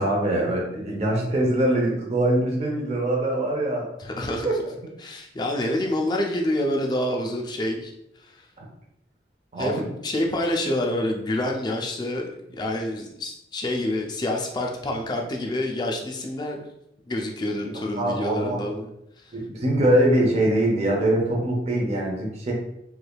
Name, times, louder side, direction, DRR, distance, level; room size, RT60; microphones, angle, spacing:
voice 1, 0.0-3.9 4.4-4.6 8.6-8.7 9.5-9.9 17.6-18.6 19.3-22.5, right 1 dB, 35° right, -2 dB, 0.7 m, -23 dB
voice 2, 4.0-4.6 5.0-7.9 8.3-8.4 9.6-12.2 12.5-16.6 17.1-18.9 19.2-19.3, left 1 dB, 25° left, 1 dB, 0.4 m, -27 dB
3.3 x 3.3 x 2.3 m, 0.80 s
head